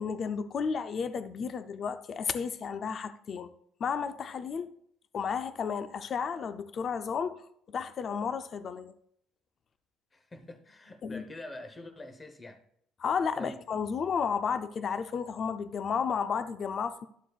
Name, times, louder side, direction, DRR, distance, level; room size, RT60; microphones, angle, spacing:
voice 1, 0.0-3.5 3.8-4.7 5.1-8.9 11.0-11.2 13.0-17.1, left 6 dB, 35° left, 0.4 m, -32 dB
voice 2, 10.1-12.6 13.3-13.6, left 1 dB, 15° left, 0.9 m, -45 dB
11.5 x 7.2 x 2.4 m
cardioid pair, 145°, 0 cm